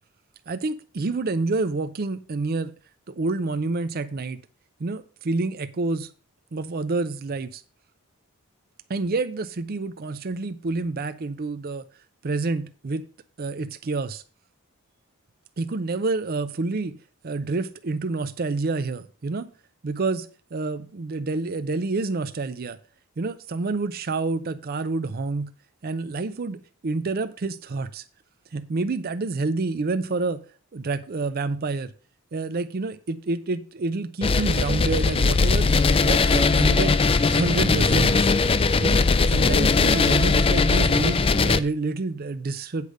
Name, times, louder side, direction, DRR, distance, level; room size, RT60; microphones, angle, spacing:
voice 1, 0.5-2.7 3.1-4.4 4.8-6.1 6.5-7.6 8.9-11.8 12.2-13.0 13.4-14.2 15.6-17.0 17.2-19.5 19.8-22.8 23.2-25.5 25.8-28.0 28.5-30.4 30.7-31.9 32.3-35.7 36.0-37.0 37.3-42.9, right 3 dB, 45° right, 0.5 m, -28 dB
sound 1, 34.2-41.6, left 4 dB, 25° left, 0.4 m, -20 dB
8.3 x 4.9 x 6.6 m
head